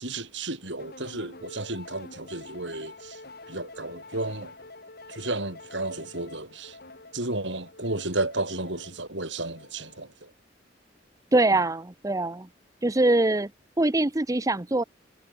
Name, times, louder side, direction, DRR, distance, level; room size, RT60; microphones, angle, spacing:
voice 1, 0.0-3.2 3.5-4.5 5.1-6.8 7.1-10.3, right 2 dB, 70° right, 7.8 m, -33 dB
sound 1, 0.8-10.2, left 2 dB, 55° left, 7.4 m, -47 dB
voice 2, 11.3-12.5 12.8-13.5 13.8-14.8, right 2 dB, 20° right, 0.7 m, -23 dB
head